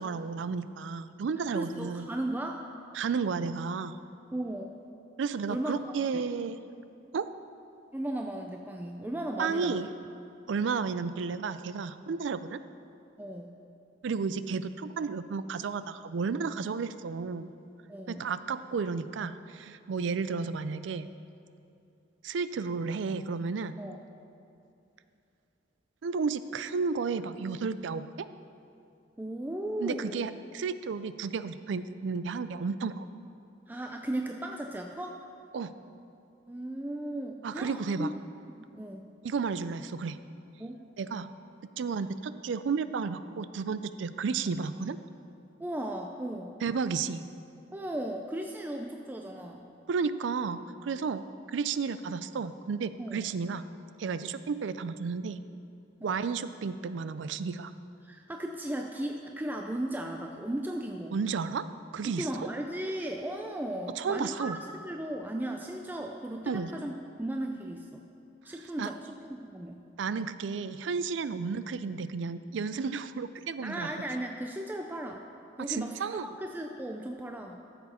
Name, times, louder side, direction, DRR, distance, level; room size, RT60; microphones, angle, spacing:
voice 1, 0.0-2.1 2.9-4.0 5.2-6.6 7.1-7.3 9.4-9.9 10.5-12.6 14.0-17.5 18.1-21.1 22.2-23.8 26.0-28.3 29.8-33.1 35.5-35.7 37.4-38.1 39.2-40.2 41.0-41.3 41.8-45.0 46.6-47.2 49.9-53.6 54.0-55.4 56.0-57.7 61.1-61.7 61.9-62.5 64.0-64.6 66.5-66.7 68.8-68.9 70.0-73.9 75.6-76.3, right 5 dB, 75° right, 13 dB, 0.4 m, -32 dB
voice 2, 1.5-2.6 4.3-4.7 5.5-6.2 7.9-9.8 13.2-13.6 17.9-18.3 23.8-24.0 29.2-30.3 33.7-35.2 36.5-38.1 38.6-39.0 40.6-40.8 45.6-46.5 47.7-49.7 53.0-53.2 56.0-56.2 58.0-61.2 62.0-66.9 67.2-68.0 68.4-69.8 73.6-75.2 75.6-77.6, right 1 dB, 10° right, 2 dB, 0.4 m, -36 dB
13.5 x 7.0 x 4.2 m, 2.6 s
head